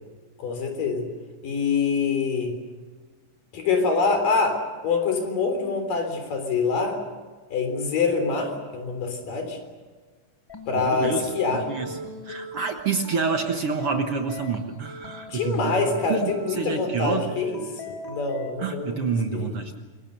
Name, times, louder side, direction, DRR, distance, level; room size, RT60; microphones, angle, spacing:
voice 1, 0.4-1.1 1.4-2.6 3.5-7.0 7.5-9.6 10.7-11.6 15.3-17.6 18.1-19.5, left 4 dB, 80° left, 6 dB, 5.3 m, -25 dB
sound 1, 10.5-18.5, left 2 dB, 10° left, 1.2 m, -39 dB
voice 2, 10.8-15.8 16.1-17.2 18.6-19.8, right 5 dB, 55° right, 4 dB, 1.8 m, -28 dB
27.0 x 23.0 x 6.8 m, 1.4 s
omnidirectional pair, 3.8 m